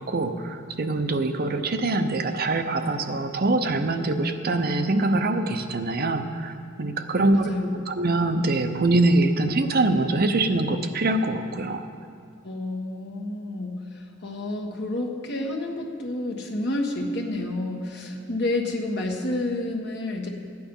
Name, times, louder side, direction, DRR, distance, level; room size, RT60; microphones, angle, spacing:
voice 1, 0.0-11.8, right 2 dB, 50° right, 7 dB, 0.7 m, -24 dB
voice 2, 7.1-7.8 12.4-20.3, left 2 dB, 60° left, 0 dB, 1.5 m, -30 dB
13.0 x 9.4 x 5.4 m, 2.2 s
head